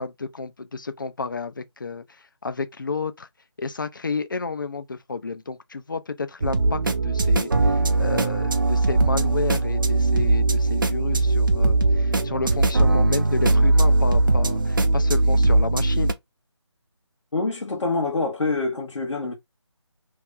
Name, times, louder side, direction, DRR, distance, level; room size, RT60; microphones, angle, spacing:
voice 1, 0.0-2.0 2.4-3.3 3.6-16.2, left 4 dB, 45° left, 0.4 m, -31 dB
sound 1, 6.4-16.1, right 2 dB, 45° right, 0.5 m, -20 dB
voice 2, 17.3-19.3, left 3 dB, 90° left, 1.1 m, -26 dB
3.0 x 2.4 x 3.6 m
figure-of-eight pair, 170°, 15 cm